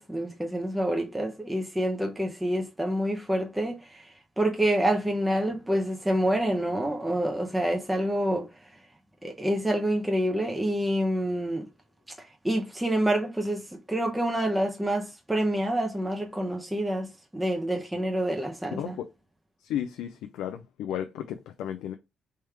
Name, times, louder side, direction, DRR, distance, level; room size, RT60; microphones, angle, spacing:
voice 1, 0.0-4.0 4.4-8.5 9.2-11.6 12.4-19.0, right 1 dB, 10° right, 0.7 m, -27 dB
voice 2, 18.7-19.0 19.6-21.9, left 10 dB, 90° left, 0.3 m, -34 dB
3.3 x 3.1 x 3.4 m
cardioid pair, 70°, 0 cm